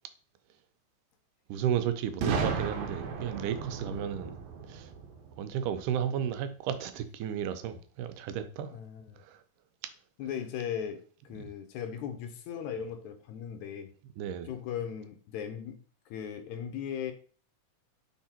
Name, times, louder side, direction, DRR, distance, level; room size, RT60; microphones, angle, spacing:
voice 1, 1.5-4.4 4.6-4.9 5.4-8.8 9.2-9.4 11.4-11.5 14.2-14.5, right 9 dB, 85° right, 2.2 m, -33 dB
Boom, 2.2-6.0, right 5 dB, 70° right, 1.9 m, -34 dB
voice 2, 8.7-9.2 10.2-11.0 11.3-13.9 14.5-15.8 16.1-17.1, left 8 dB, 75° left, 2.0 m, -37 dB
6.0 x 3.6 x 4.3 m
omnidirectional pair, 3.6 m